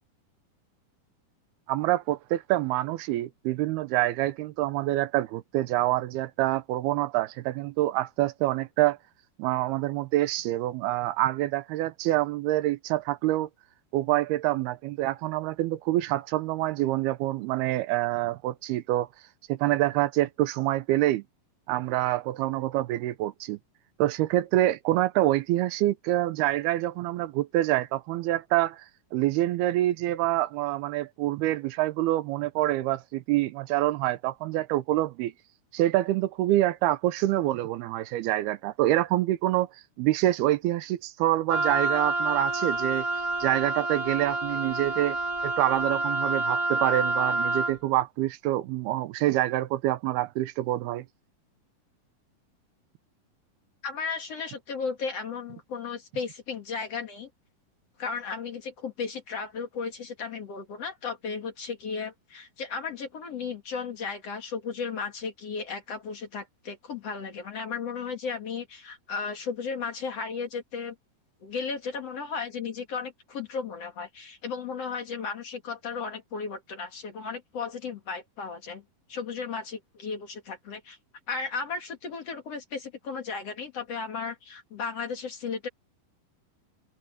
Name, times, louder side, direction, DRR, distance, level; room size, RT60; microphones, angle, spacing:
voice 1, 1.7-9.0 9.4-13.5 13.9-19.1 19.5-21.2 21.7-23.6 24.0-28.8 29.1-35.3 35.7-39.7 40.0-43.1 43.4-45.2 45.4-51.1, right 15 dB, 85° right, 2.8 m, -26 dB
Wind instrument woodwind instrument, 41.5-47.8, right 2 dB, 40° right, 0.4 m, -28 dB
voice 2, 53.8-57.3 58.0-70.9 71.4-78.8 79.1-81.0 81.3-85.7, left 5 dB, 45° left, 2.6 m, -35 dB
omnidirectional pair, 4.5 m